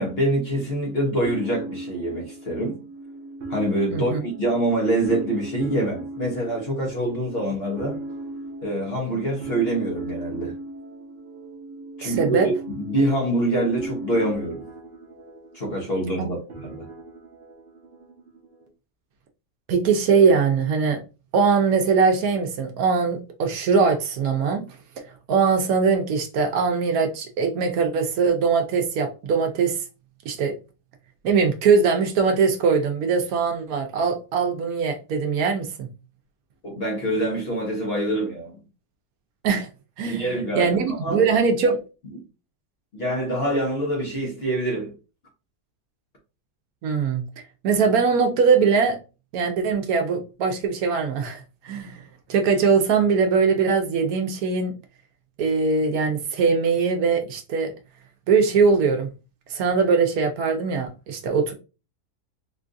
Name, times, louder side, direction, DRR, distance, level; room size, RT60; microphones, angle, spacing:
voice 1, 0.0-2.8 3.5-8.0 8.6-10.5 12.0-14.6 15.5-16.9 36.6-38.6 40.0-41.2 42.9-44.9, right 1 dB, 45° left, 1.0 m, -25 dB
sound 1, 1.2-18.7, right 2 dB, 55° right, 0.7 m, -38 dB
voice 2, 12.0-12.5 16.2-16.3 19.7-21.0 21.3-24.7 25.3-29.8 30.3-30.5 31.2-35.9 39.4-39.7 40.0-40.2 40.5-41.8 46.8-47.2 47.6-49.0 49.3-52.0 52.3-54.7 55.4-57.7 58.3-59.1 59.5-61.5, right 5 dB, 70° right, 1.0 m, -21 dB
3.7 x 2.4 x 2.5 m
omnidirectional pair, 1.7 m